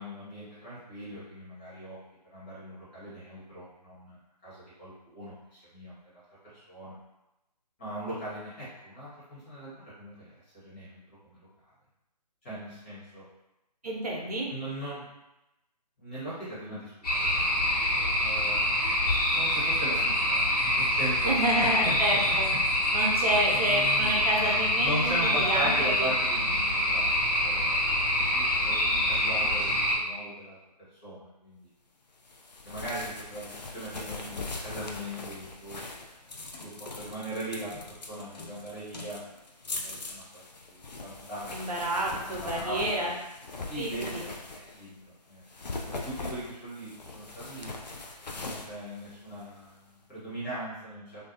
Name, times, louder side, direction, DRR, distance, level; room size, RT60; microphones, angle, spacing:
voice 1, 0.0-2.0 2.3-6.0 6.5-7.0 7.8-11.5 12.4-13.2 14.5-15.0 16.0-18.6 19.2-22.4 23.3-24.3 24.8-27.1 27.4-27.9 28.2-30.6 30.9-31.7 32.6-35.8 36.6-39.2 39.7-41.8 42.2-43.1 43.6-45.0 45.3-45.4 45.8-47.7 48.4-51.3, right 1 dB, 20° left, -11 dB, 1.0 m, -39 dB
voice 2, 13.8-14.5 21.2-22.5 22.9-26.1 41.5-43.1 43.8-44.2, right 1 dB, 65° right, -2 dB, 0.6 m, -29 dB
sound 1, 17.0-30.0, left 1 dB, 65° left, 1.1 m, -26 dB
sound 2, 32.2-44.9 45.4-49.7, left 3 dB, 85° left, 0.4 m, -41 dB
2.4 x 2.2 x 2.5 m, 0.93 s
figure-of-eight pair, 150°, 21 cm